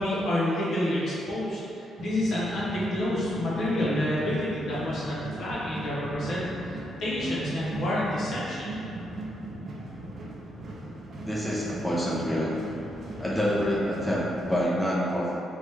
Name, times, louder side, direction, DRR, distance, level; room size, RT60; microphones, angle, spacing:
voice 1, 0.0-8.7, left 1 dB, 60° left, -7 dB, 0.8 m, -29 dB
sound 1, 2.0-14.6, right 2 dB, 50° right, 0.4 m, -39 dB
voice 2, 11.2-12.5 13.2-15.4, equal, 5° left, -7 dB, 0.5 m, -27 dB
2.9 x 2.2 x 3.2 m, 2.8 s
cardioid pair, 105°, 0 cm